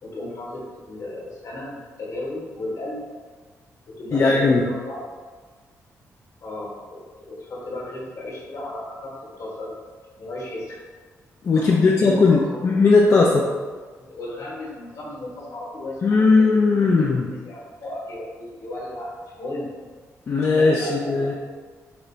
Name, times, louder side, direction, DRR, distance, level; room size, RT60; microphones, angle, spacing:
voice 1, 0.0-3.0 3.9-5.0 6.4-9.7 10.1-10.8 11.5-12.7 14.0-17.0 17.4-19.7 20.6-21.4, left 1 dB, 60° left, -4 dB, 1.2 m, -35 dB
voice 2, 4.1-4.6 11.4-13.5 16.0-17.3 20.3-21.3, left 3 dB, 45° left, -2 dB, 0.4 m, -18 dB
3.9 x 2.2 x 3.1 m, 1.5 s
cardioid pair, 80°, 6 cm